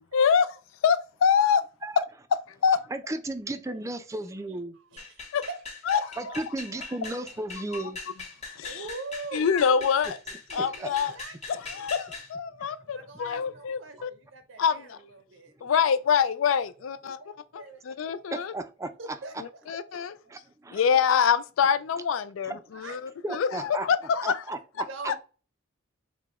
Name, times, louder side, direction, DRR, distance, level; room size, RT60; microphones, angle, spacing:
voice 1, 0.1-0.6 0.8-1.6 2.0-2.1 2.6-2.8 5.3-5.4 5.9-6.0 7.7-7.8 8.6-8.8 9.3-10.2 10.5-11.1 11.7-14.1 14.6-15.0 15.6-17.2 17.9-18.5 19.4-20.2 20.7-24.4, left 7 dB, 85° left, 0.4 m, -25 dB
voice 2, 2.9-4.8 6.2-8.0 10.5-10.9 12.6-12.8 18.3-18.9 19.9-20.8 22.4-22.6 23.2-23.9 24.2-24.9, right 2 dB, 15° right, 0.4 m, -35 dB
voice 3, 4.7-5.6 5.9-7.0 8.6-9.6 10.5-11.4 12.8-15.5 17.1-17.8 19.0-19.3 19.9-20.5 22.7-23.1 24.9-25.2, right 3 dB, 70° right, 0.6 m, -43 dB
sound 1, 5.0-12.3, left 4 dB, 35° left, 1.4 m, -41 dB
4.7 x 2.1 x 3.5 m
head